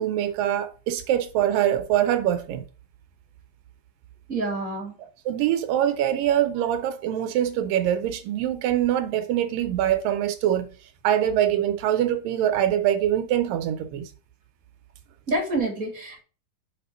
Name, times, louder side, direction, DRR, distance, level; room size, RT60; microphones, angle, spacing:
voice 1, 0.0-2.6 5.3-10.7 11.0-14.1, right 11 dB, 85° right, 2.5 m, -24 dB
voice 2, 4.3-4.9 15.3-16.2, right 2 dB, 30° right, 2.2 m, -27 dB
6.1 x 5.1 x 4.2 m
omnidirectional pair, 3.9 m